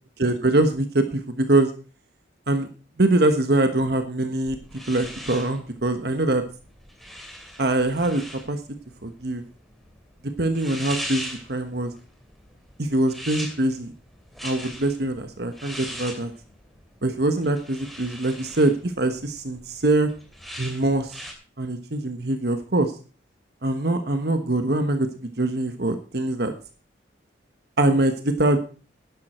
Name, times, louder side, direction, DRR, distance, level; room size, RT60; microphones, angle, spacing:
voice 1, 0.2-1.7 2.5-2.7 3.0-4.6 4.9-6.4 7.6-8.6 9.0-9.4 10.4-11.9 12.8-13.9 14.4-16.3 17.0-20.1 20.6-21.2 21.6-22.9 23.6-25.1 25.4-26.5 27.8-28.6, right 2 dB, 55° right, 7 dB, 1.3 m, -23 dB
sound 1, 4.4-21.3, equal, ahead, 2.6 m, -40 dB
11.5 x 11.0 x 4.4 m, 0.36 s
head